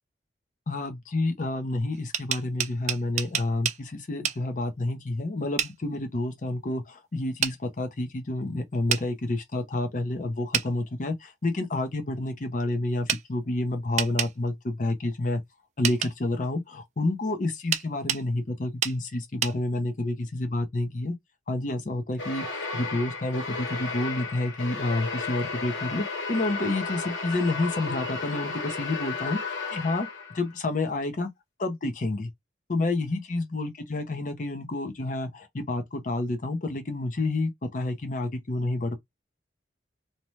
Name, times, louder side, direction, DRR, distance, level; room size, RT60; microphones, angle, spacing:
voice 1, 0.7-15.4 15.8-21.1 21.5-30.1 30.3-31.3 31.6-32.3 32.7-39.0, left 2 dB, 45° left, 0.6 m, -29 dB
sound 1, 1.9-3.8 4.2-4.4 5.6-5.7 7.4-7.6 8.9-9.0 10.5-10.7 13.1-13.2 14.0-14.3 15.8-16.1 17.7-18.2 18.8-19.0 19.4-19.6, right 9 dB, 40° right, 0.4 m, -28 dB
sound 2, 22.2-30.5, left 4 dB, 90° left, 1.0 m, -33 dB
2.7 x 2.2 x 3.1 m
head